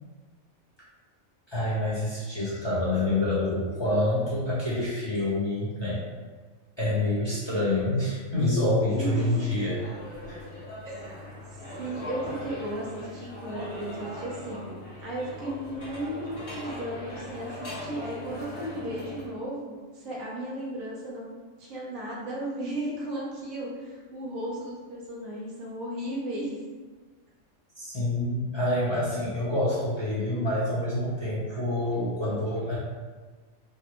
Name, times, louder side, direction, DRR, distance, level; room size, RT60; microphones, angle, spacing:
voice 1, 1.5-6.0 6.8-10.0 10.3-10.4 27.8-32.8, left 1 dB, 25° left, -9 dB, 0.7 m, -27 dB
voice 2, 8.9-9.3 10.8-10.9 11.8-21.3 21.6-26.6, right 1 dB, 85° right, -5 dB, 1.3 m, -35 dB
sound 1, 9.1-19.3, left 1 dB, 45° left, 1.1 m, -40 dB
3.9 x 2.0 x 3.0 m, 1.4 s
omnidirectional pair, 1.4 m